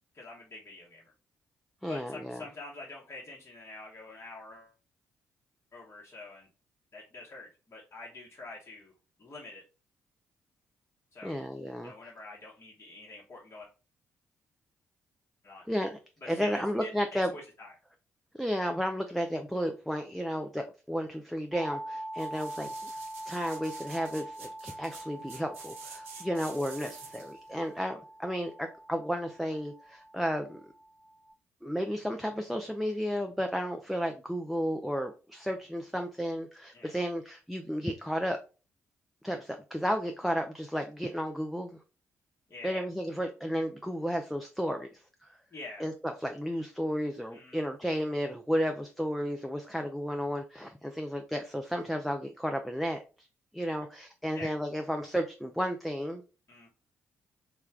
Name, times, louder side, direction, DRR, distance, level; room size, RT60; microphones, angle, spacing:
voice 1, 0.1-1.0 1.9-4.7 5.7-6.5 6.9-8.9 9.2-9.6 11.1-11.4 11.8-13.7 15.4-15.6 16.3-16.9 17.2-17.7 36.7-36.9 42.5-42.9 45.5-45.8 47.3-47.7 54.3-54.5 56.5-56.7, left 2 dB, 40° left, -4 dB, 1.1 m, -46 dB
voice 2, 1.8-2.4 11.2-11.9 15.7-16.0 16.3-17.3 18.3-30.6 31.6-38.4 39.2-41.8 42.6-45.4 45.8-53.3 53.5-56.2, equal, ahead, 4 dB, 0.4 m, -33 dB
sound 1, 21.5-31.3, right 1 dB, 35° right, 1.0 m, -44 dB
sound 2, 22.1-27.4 27.8-27.9, right 5 dB, 90° right, 0.4 m, -49 dB
3.2 x 2.3 x 3.5 m, 0.33 s
hypercardioid pair, 40°, 7 cm